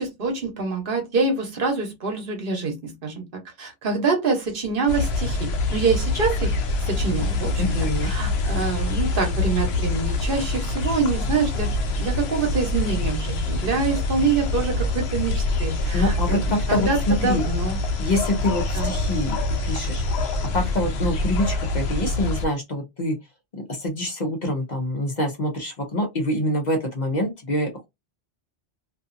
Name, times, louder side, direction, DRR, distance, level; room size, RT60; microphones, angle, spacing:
voice 1, 0.0-3.2 3.6-6.5 6.9-7.7 8.0-11.7 12.0-16.4 16.7-17.8 18.7-18.9, right 4 dB, 60° right, 1.1 m, -25 dB
sound 1, 4.9-22.5, left 2 dB, 80° left, 0.8 m, -25 dB
voice 2, 7.6-8.1 15.9-17.4 18.0-20.0 20.5-23.2 23.5-27.9, left 1 dB, 50° left, 0.7 m, -25 dB
2.5 x 2.5 x 2.5 m
omnidirectional pair, 1.1 m